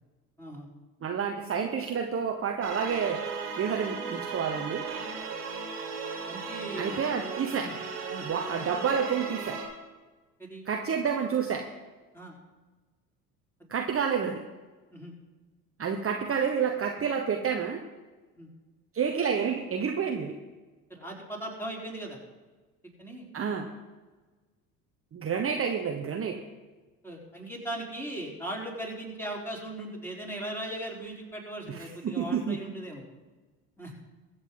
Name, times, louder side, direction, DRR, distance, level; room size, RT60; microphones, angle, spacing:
voice 1, 1.0-3.2 3.6-4.8 6.8-7.7 8.2-9.6 10.6-11.7 13.7-14.4 15.8-17.8 18.9-20.3 23.3-23.7 25.1-26.4 31.7-32.6, right 6 dB, 30° right, 3 dB, 1.3 m, -29 dB
sound 1, 2.6-9.7, right 5 dB, 80° right, 2.2 m, -36 dB
voice 2, 6.3-7.0 7.6-7.7 8.1-8.3 10.4-10.7 12.1-12.3 13.6-13.7 14.9-15.1 18.4-18.5 20.9-22.2 23.0-23.3 27.0-33.0 33.8-33.9, right 1 dB, 5° left, -2 dB, 4.3 m, -38 dB
23.0 x 8.0 x 4.0 m, 1.3 s
figure-of-eight pair, 60°, 46 cm